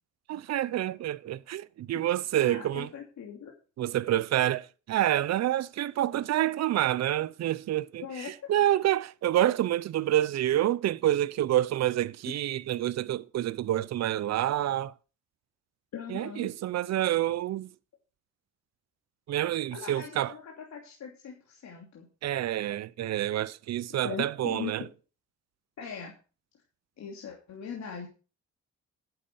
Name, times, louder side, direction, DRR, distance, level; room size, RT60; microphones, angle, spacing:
voice 1, 0.3-2.9 3.8-4.6 4.9-14.9 16.1-17.7 19.3-20.3 22.2-24.8, right 13 dB, 60° right, 0.7 m, -28 dB
voice 2, 2.3-3.5 8.0-8.3 15.9-16.5 19.7-22.1 24.0-24.7 25.8-26.1 27.0-28.1, left 7 dB, 65° left, 2.9 m, -40 dB
10.0 x 7.6 x 6.9 m
cardioid pair, 90°, 30 cm